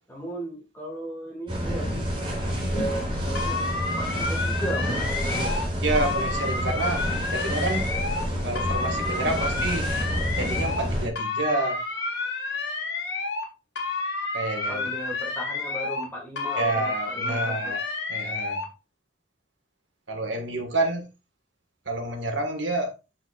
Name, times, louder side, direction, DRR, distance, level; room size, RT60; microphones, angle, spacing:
voice 1, 0.1-2.1 2.5-5.6 14.7-17.8, right 1 dB, 10° left, 2.1 m, -36 dB
sound 1, 1.5-11.1, equal, 30° right, 2.3 m, -28 dB
sound 2, 3.3-5.7 5.9-8.3 8.5-10.9 11.1-13.5 13.7-16.1 16.4-18.7, left 3 dB, 85° left, 1.8 m, -30 dB
voice 2, 5.8-7.0 7.3-7.8 8.4-9.9 10.3-11.8 14.3-14.8 16.6-17.8 18.1-18.6 20.1-21.0 21.8-22.9, right 2 dB, 85° right, 1.6 m, -28 dB
7.6 x 6.0 x 2.4 m
head